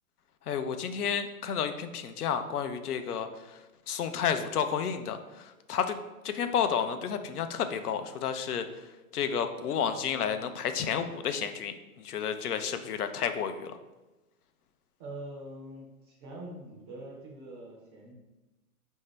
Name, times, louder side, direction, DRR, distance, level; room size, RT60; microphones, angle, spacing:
voice 1, 0.5-3.3 3.9-6.0 6.2-8.7 9.1-13.8, left 7 dB, 85° left, 9 dB, 0.5 m, -31 dB
voice 2, 15.0-18.1, right 1 dB, 20° right, -2 dB, 0.4 m, -44 dB
4.4 x 2.7 x 3.2 m, 1.1 s
hypercardioid pair, 125°, 44 cm